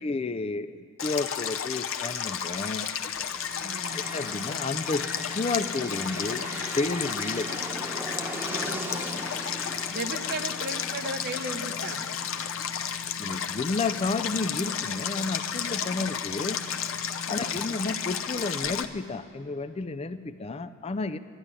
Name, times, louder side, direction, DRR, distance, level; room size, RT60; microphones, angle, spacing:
voice 1, 0.0-2.9 3.9-5.0 5.3-7.5 13.2-16.6 17.3-21.2, left 3 dB, 30° left, 11 dB, 0.4 m, -31 dB
Stream, 1.0-18.8, left 8 dB, 65° left, 0.7 m, -32 dB
sound 1, 2.8-19.1, left 3 dB, 80° right, 1.1 m, -45 dB
sound 2, 3.4-13.2, equal, 10° right, 1.0 m, -40 dB
voice 2, 3.6-4.0 8.5-9.2 9.9-12.1 17.3-17.6, right 2 dB, 45° right, 8 dB, 0.8 m, -36 dB
12.0 x 11.5 x 9.7 m, 2.7 s
head